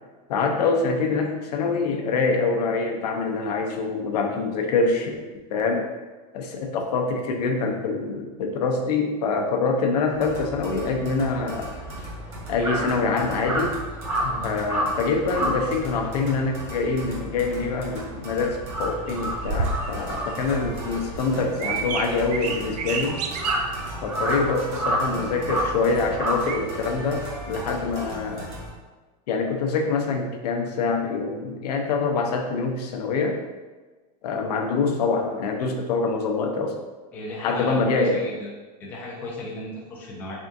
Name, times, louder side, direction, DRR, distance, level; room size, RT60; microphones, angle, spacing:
voice 1, 0.3-5.9 6.3-11.8 12.5-13.8 14.2-23.2 24.0-28.6 29.3-33.4 34.2-36.8 37.4-38.2, left 4 dB, 75° left, 3 dB, 0.6 m, -25 dB
sound 1, 10.1-28.7, right 1 dB, 30° right, 0.9 m, -38 dB
Crow, 11.7-18.2 18.5-27.1, right 1 dB, 50° right, 1.2 m, -30 dB
sound 2, 19.1-26.6, right 4 dB, 75° right, 0.5 m, -32 dB
voice 2, 37.1-38.5 38.8-40.3, left 1 dB, 10° left, -4 dB, 0.3 m, -35 dB
3.6 x 3.4 x 2.6 m, 1.3 s
supercardioid pair, 170°, 21 cm